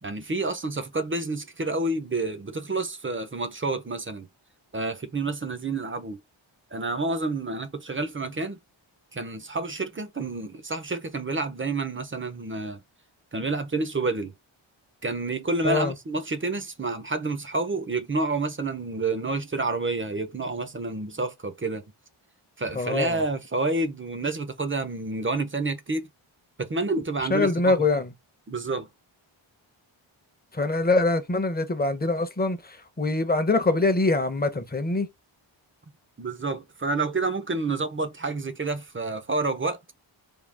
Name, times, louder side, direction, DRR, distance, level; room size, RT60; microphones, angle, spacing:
voice 1, 0.0-4.3 4.7-6.2 6.7-8.6 9.1-12.8 13.3-14.3 15.0-21.8 22.6-26.1 26.6-27.9 28.5-28.9 36.2-39.8, right 3 dB, 25° right, 0.6 m, -29 dB
voice 2, 22.7-23.2 27.3-28.1 30.5-35.1, left 3 dB, 20° left, 0.7 m, -24 dB
3.6 x 2.3 x 3.3 m
wide cardioid pair, 75°, 49 cm